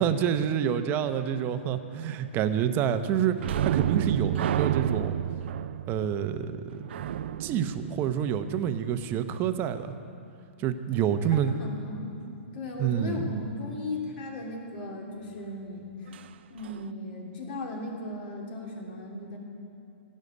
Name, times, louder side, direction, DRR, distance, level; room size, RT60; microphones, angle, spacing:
voice 1, 0.0-5.1 5.9-6.8 7.4-9.9 10.6-11.6 12.8-13.2, right 9 dB, 30° right, 9 dB, 0.8 m, -28 dB
sound 1, 3.4-8.8 16.1-16.3 16.6-16.8, right 10 dB, 60° right, 0.5 m, -30 dB
voice 2, 11.3-12.2 12.5-16.2 16.5-19.4, left 2 dB, 50° left, -1 dB, 3.1 m, -37 dB
16.0 x 6.5 x 9.5 m, 2.6 s
hypercardioid pair, 125°, 7 cm